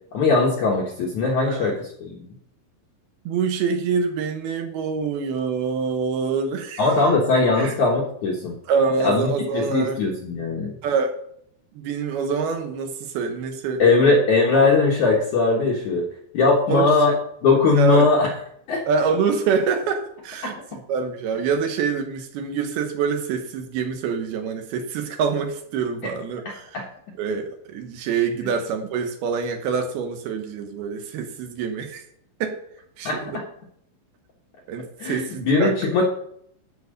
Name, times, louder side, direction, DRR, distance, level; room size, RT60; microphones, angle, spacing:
voice 1, 0.1-2.2 6.8-8.6 9.0-10.7 13.8-16.1 16.3-17.1 17.4-18.3 18.7-18.8 20.4-20.5 26.0-26.1 26.7-26.8 28.4-28.5 33.0-33.2 35.0-36.0, left 3 dB, 75° left, -2 dB, 1.7 m, -20 dB
voice 2, 3.3-6.9 7.5-7.8 8.7-10.0 10.8-11.2 11.8-14.2 16.7-17.1 17.7-18.1 18.9-26.8 27.2-32.0 32.4-32.6 33.0-33.4 34.7-36.0, right 5 dB, 70° right, 5 dB, 2.5 m, -26 dB
12.5 x 4.8 x 6.5 m, 0.69 s
omnidirectional pair, 5.5 m